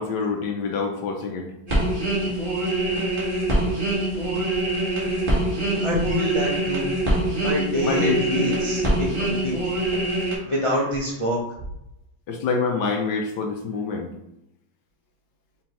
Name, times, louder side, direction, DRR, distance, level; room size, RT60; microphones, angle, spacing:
voice 1, 0.0-1.5 7.8-8.5 10.4-10.5 12.3-14.1, left 4 dB, 70° left, 4 dB, 1.2 m, -26 dB
sound 1, 1.7-10.4, right 1 dB, 30° right, 1.3 m, -24 dB
voice 2, 5.8-6.9 7.4-9.6 10.4-11.4, equal, 50° left, -5 dB, 0.3 m, -26 dB
5.2 x 3.5 x 2.9 m, 0.83 s
omnidirectional pair, 2.1 m